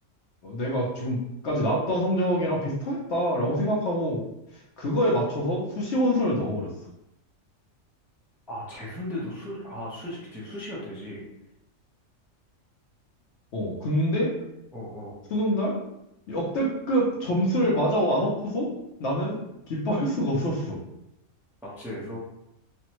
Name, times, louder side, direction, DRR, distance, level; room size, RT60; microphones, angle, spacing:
voice 1, 0.4-1.2 1.4-4.2 4.8-6.7 13.5-14.3 15.3-15.8 16.3-18.7 19.0-19.4 19.7-20.8, equal, 65° left, -2 dB, 0.9 m, -25 dB
voice 2, 8.5-11.3 14.7-15.2 21.6-22.2, left 1 dB, ahead, -6 dB, 0.5 m, -36 dB
3.4 x 2.1 x 2.9 m, 0.85 s
omnidirectional pair, 1.4 m